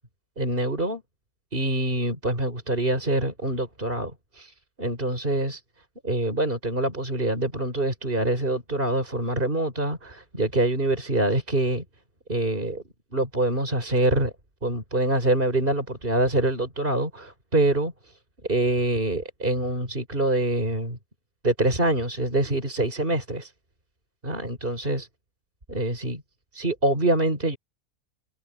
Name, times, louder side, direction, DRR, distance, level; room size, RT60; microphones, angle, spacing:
voice 1, 0.4-1.0 1.5-5.6 6.0-11.8 12.3-12.8 13.1-14.3 14.6-17.9 18.5-21.0 21.4-23.5 24.2-25.1 25.7-26.2 26.5-27.6, right 1 dB, 40° right, 5.3 m, -25 dB
omnidirectional pair, 1.5 m